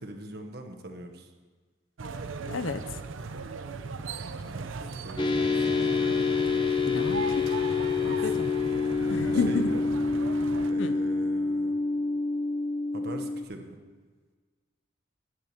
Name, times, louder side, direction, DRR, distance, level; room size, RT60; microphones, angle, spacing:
voice 1, 0.0-1.3 4.4-6.2 8.2-8.4 9.1-9.8 10.7-11.8 12.9-13.8, right 1 dB, 50° right, 4 dB, 1.1 m, -42 dB
sound 1, 2.0-10.7, right 4 dB, 80° right, 0.6 m, -38 dB
voice 2, 2.5-3.0 6.9-7.5 8.0-8.5 9.1-9.7 10.8-11.0, left 4 dB, 80° left, 11 dB, 0.6 m, -31 dB
sound 2, 5.2-13.4, left 4 dB, 25° left, 0.6 m, -27 dB
10.0 x 8.0 x 5.8 m, 1.4 s
head